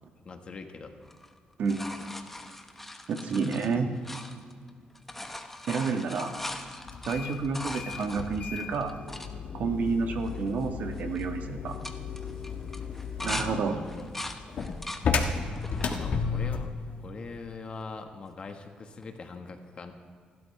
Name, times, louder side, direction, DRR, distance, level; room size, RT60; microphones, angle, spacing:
voice 1, 0.2-1.0 3.6-3.7 4.0-4.1 13.2-14.1 15.7-16.7 17.0-19.9, left 4 dB, 40° left, 5 dB, 1.4 m, -42 dB
sound 1, 1.0-4.7 4.9-9.3 9.9-10.0 10.2-10.6 10.9-11.3 11.7-13.5 13.9-15.1 15.5-16.1 16.7-17.4 19.0-19.1, left 1 dB, 10° left, 1.0 m, -40 dB
voice 2, 3.1-3.9 5.7-6.3 7.0-8.9 9.5-11.8 13.2-13.8, right 5 dB, 65° right, 5 dB, 1.4 m, -29 dB
sound 2, 6.9-16.8, left 5 dB, 60° left, 1.5 m, -34 dB
27.5 x 12.5 x 3.3 m, 2.1 s
cardioid pair, 120°, 3 cm